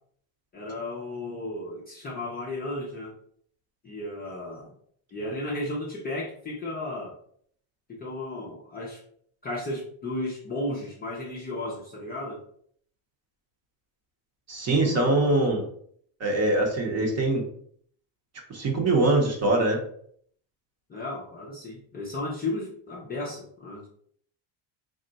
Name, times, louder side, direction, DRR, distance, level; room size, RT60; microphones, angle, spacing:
voice 1, 0.5-3.1 3.8-4.7 5.1-7.1 7.9-9.0 9.4-12.4 14.8-15.5 20.9-23.9, left 1 dB, 20° left, -5 dB, 0.4 m, -34 dB
voice 2, 14.5-15.6 16.2-17.4 18.5-19.8, right 2 dB, 30° right, 2 dB, 0.7 m, -23 dB
3.6 x 2.1 x 3.9 m, 0.62 s
cardioid pair, 160°, 50 cm